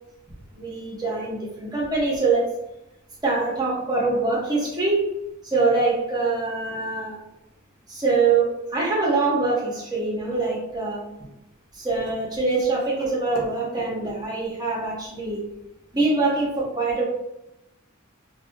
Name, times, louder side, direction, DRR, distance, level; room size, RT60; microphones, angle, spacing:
voice 1, 0.5-2.5 3.2-5.1 5.4-7.2 7.9-11.3 11.8-15.4 15.9-17.0, right 3 dB, 20° right, -4 dB, 0.7 m, -24 dB
2.5 x 2.2 x 2.5 m, 0.89 s
head